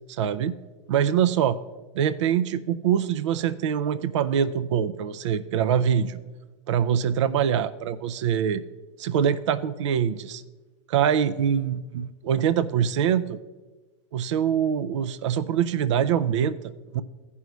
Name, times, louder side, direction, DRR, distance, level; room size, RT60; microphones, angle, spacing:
voice 1, 0.1-0.6 0.9-1.6 1.9-6.2 6.7-8.6 9.0-10.4 10.9-13.4 14.1-17.0, right 8 dB, 75° right, 13 dB, 0.5 m, -24 dB
15.0 x 5.4 x 3.1 m, 1.2 s
hypercardioid pair, 110°, 16 cm